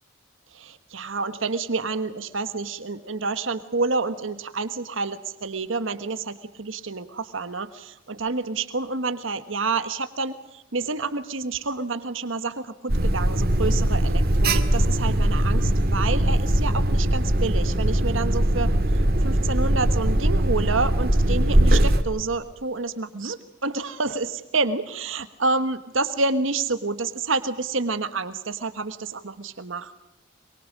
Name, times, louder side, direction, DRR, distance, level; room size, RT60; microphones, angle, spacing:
voice 1, 0.5-18.8 19.2-29.9, right 3 dB, 75° right, 11 dB, 1.4 m, -28 dB
Alarm, 12.9-22.0, right 1 dB, 50° right, 2.0 m, -21 dB
24.0 x 23.5 x 7.5 m, 0.90 s
head